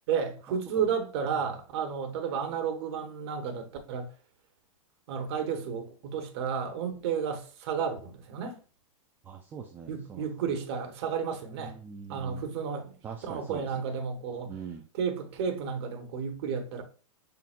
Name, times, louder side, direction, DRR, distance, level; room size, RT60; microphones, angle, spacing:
voice 1, 0.1-4.1 5.1-8.6 9.9-11.8 12.1-13.0 13.2-14.5 15.0-16.8, right 6 dB, 50° right, 1.2 m, -32 dB
voice 2, 9.2-10.3 11.6-12.5 13.0-14.0 14.4-14.8, right 6 dB, 10° right, 0.3 m, -42 dB
5.7 x 3.8 x 2.5 m
hypercardioid pair, 150°, 18 cm